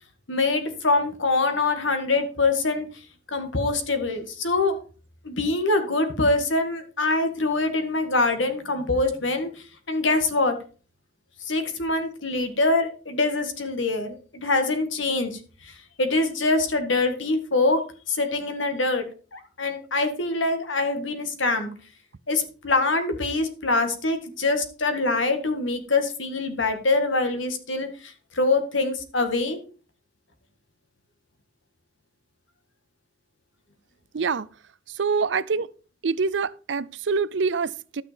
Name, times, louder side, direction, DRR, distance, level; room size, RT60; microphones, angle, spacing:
voice 1, 0.3-2.9 3.3-4.7 5.2-9.5 9.9-10.5 11.5-15.7 16.0-17.8 18.1-19.1 19.3-21.7 22.3-29.6, left 3 dB, 70° left, 1.9 m, -24 dB
voice 2, 34.1-34.5 34.9-35.7 36.0-38.0, right 5 dB, 65° right, 0.5 m, -25 dB
12.5 x 6.1 x 5.1 m
head